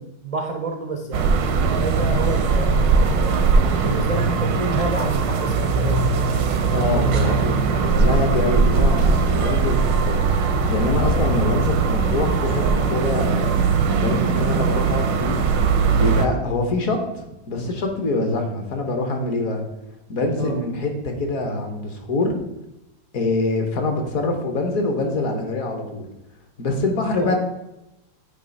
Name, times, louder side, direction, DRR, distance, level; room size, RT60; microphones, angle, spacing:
voice 1, 0.0-2.8 3.2-6.1 20.3-20.6 27.2-27.3, right 3 dB, 55° right, 0 dB, 0.4 m, -29 dB
sound 1, 1.1-16.3, right 5 dB, 85° right, 1.4 m, -20 dB
voice 2, 6.7-9.8 10.1-10.2 10.7-13.5 13.9-15.4 15.9-19.6 20.1-22.3 23.1-26.1 26.6-27.3, left 2 dB, 55° left, 4 dB, 1.4 m, -24 dB
9.1 x 3.1 x 5.2 m, 0.91 s
omnidirectional pair, 1.9 m